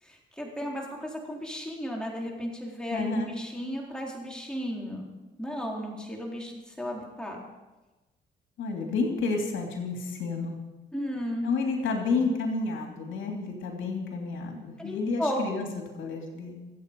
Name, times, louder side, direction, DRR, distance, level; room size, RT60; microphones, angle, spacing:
voice 1, 0.0-5.1 5.4-7.4 10.9-11.5 14.8-15.4, equal, 5° left, -2 dB, 4.1 m, -34 dB
voice 2, 2.9-3.3 8.6-10.6 11.4-15.7 15.9-16.6, left 4 dB, 75° left, 2 dB, 2.9 m, -30 dB
24.0 x 8.5 x 5.4 m, 1.1 s
cardioid pair, 90°, 20 cm